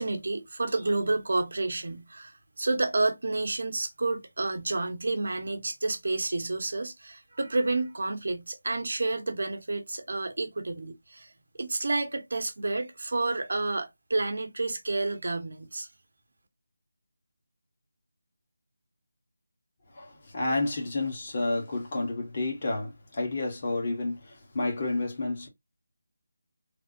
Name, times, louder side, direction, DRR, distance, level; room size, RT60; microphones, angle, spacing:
voice 1, 0.0-11.3 11.6-15.9, right 2 dB, 65° right, 0.9 m, -30 dB
voice 2, 19.9-25.5, left 2 dB, 35° left, 1.1 m, -30 dB
3.3 x 2.0 x 2.5 m
figure-of-eight pair, 165°, 0 cm